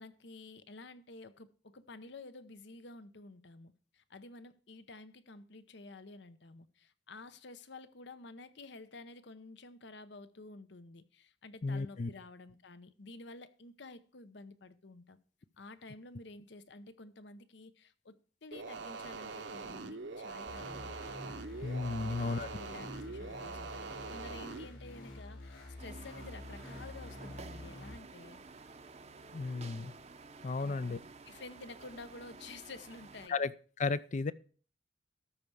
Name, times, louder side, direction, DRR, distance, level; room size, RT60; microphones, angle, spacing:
voice 1, 0.0-15.2 15.6-18.2 18.4-21.0 22.0-23.7 24.1-28.4 30.6-31.0 31.3-33.4, left 3 dB, 65° left, 0.8 m, -51 dB
voice 2, 11.6-12.1 21.6-22.5 29.3-29.9 30.4-31.0 33.3-33.5 33.8-34.3, left 4 dB, 40° left, 0.5 m, -34 dB
sound 1, 18.5-24.6, right 3 dB, 65° right, 1.0 m, -43 dB
sound 2, 20.5-28.0, left 1 dB, 90° left, 4.6 m, -48 dB
sound 3, 25.8-33.3, right 3 dB, 35° right, 0.7 m, -52 dB
13.0 x 4.7 x 6.9 m
head